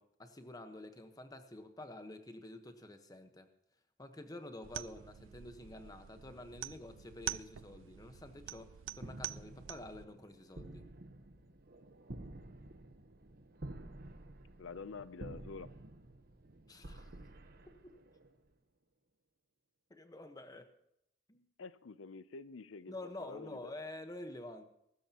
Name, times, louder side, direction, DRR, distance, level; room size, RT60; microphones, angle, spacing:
voice 1, 0.0-3.5 4.0-10.9 16.7-17.2 17.7-18.0 19.9-20.7 21.3-21.4 22.9-24.6, left 1 dB, 20° left, 7 dB, 1.2 m, -49 dB
sound 1, 4.6-10.0, right 12 dB, 80° right, 0.4 m, -46 dB
sound 2, 9.0-18.5, right 1 dB, 50° right, 1.0 m, -51 dB
voice 2, 14.6-15.7 21.6-23.7, left 4 dB, 90° left, 15 dB, 0.6 m, -48 dB
23.0 x 13.0 x 3.0 m, 0.79 s
head